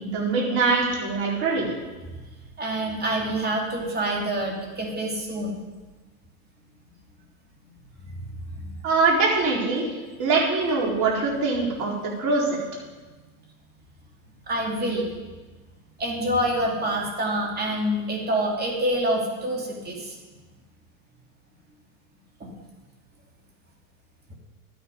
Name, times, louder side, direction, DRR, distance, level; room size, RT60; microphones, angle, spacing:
voice 1, 0.1-1.7 8.8-9.9 10.2-11.9 12.2-12.6, right 3 dB, 40° right, -3 dB, 4.1 m, -23 dB
voice 2, 2.6-5.6 8.1-8.7 14.5-15.1 16.0-20.2 22.4-22.5, right 1 dB, 20° right, -1 dB, 3.1 m, -27 dB
12.0 x 9.3 x 5.4 m, 1.2 s
hypercardioid pair, 110°, 44 cm